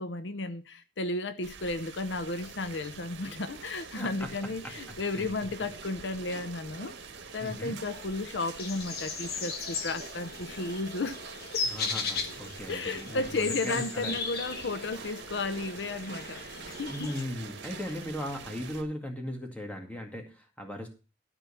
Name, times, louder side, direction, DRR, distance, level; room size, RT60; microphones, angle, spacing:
voice 1, 0.0-6.9 7.3-11.2 11.5-11.7 12.7-17.1, left 3 dB, 75° left, 0.8 m, -34 dB
sound 1, 1.4-18.8, right 6 dB, 90° right, 1.6 m, -48 dB
sound 2, 2.1-18.9, right 3 dB, 60° right, 1.2 m, -48 dB
voice 2, 3.9-4.3 4.6-5.3 7.4-7.8 11.6-14.2 16.9-20.9, equal, 5° left, 2.0 m, -38 dB
sound 3, 7.9-17.2, left 5 dB, 55° left, 1.5 m, -38 dB
13.0 x 4.4 x 7.0 m
head